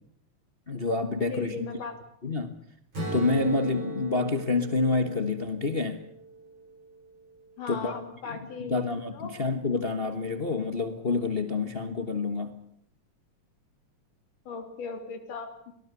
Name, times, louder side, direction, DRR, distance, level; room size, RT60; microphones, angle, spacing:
voice 1, 0.7-1.7 2.2-2.5 3.1-6.0 7.7-8.0 8.3-12.5, left 3 dB, 55° left, 9 dB, 0.6 m, -28 dB
voice 2, 1.2-2.0 4.1-4.2 7.6-8.8 9.1-9.3 14.5-15.7, left 5 dB, 90° left, 7 dB, 4.6 m, -38 dB
Strum, 2.9-7.1, right 2 dB, 45° right, 9.2 m, -38 dB
23.5 x 19.0 x 8.3 m, 0.68 s
omnidirectional pair, 3.5 m